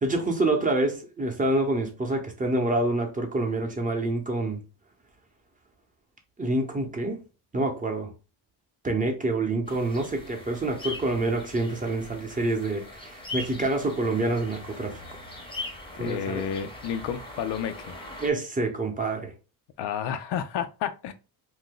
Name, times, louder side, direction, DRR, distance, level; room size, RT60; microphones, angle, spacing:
voice 1, 0.0-4.6 6.4-7.2 7.5-8.1 8.8-15.0 16.0-16.4 18.2-19.3, right 2 dB, 20° right, 0.7 m, -27 dB
sound 1, 9.7-18.3, left 2 dB, 10° left, 0.8 m, -41 dB
voice 2, 16.0-18.0 19.8-21.1, left 8 dB, 70° left, 0.5 m, -31 dB
2.6 x 2.2 x 3.6 m
cardioid pair, 110°, 42 cm